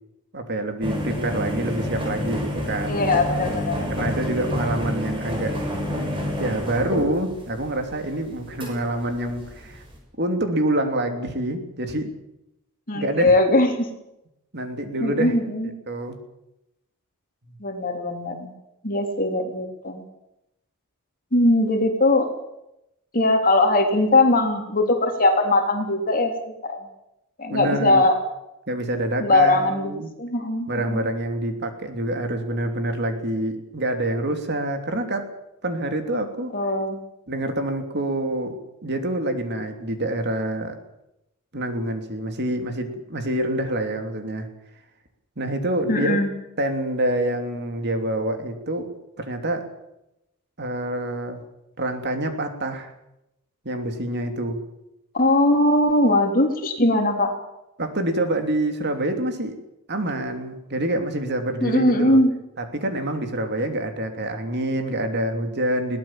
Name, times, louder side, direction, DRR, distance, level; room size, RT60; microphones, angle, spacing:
voice 1, 0.3-3.1 3.9-5.6 6.4-9.8 10.2-12.1 12.9-13.4 14.5-15.3 15.9-16.2 17.5-17.6 27.5-28.0 28.7-30.1 30.7-35.3 35.6-36.5 37.3-38.5 38.8-40.8 41.5-44.5 45.4-46.2 46.6-48.9 49.2-49.7 50.6-51.4 51.8-52.9 53.6-54.6 57.8-59.6 59.9-62.2 62.6-66.0, right 1 dB, 50° right, 6 dB, 3.1 m, -26 dB
sound 1, 0.8-10.0, left 1 dB, 25° right, 6.6 m, -29 dB
voice 2, 2.9-4.1 12.9-13.7 15.0-15.7 17.6-18.5 18.8-20.0 21.3-22.3 23.1-26.8 27.4-28.2 29.2-29.9 30.2-31.0 36.5-37.0 45.9-46.3 55.1-57.3 61.6-62.3, left 2 dB, 40° left, 4 dB, 3.5 m, -20 dB
22.0 x 18.0 x 7.6 m, 0.87 s
head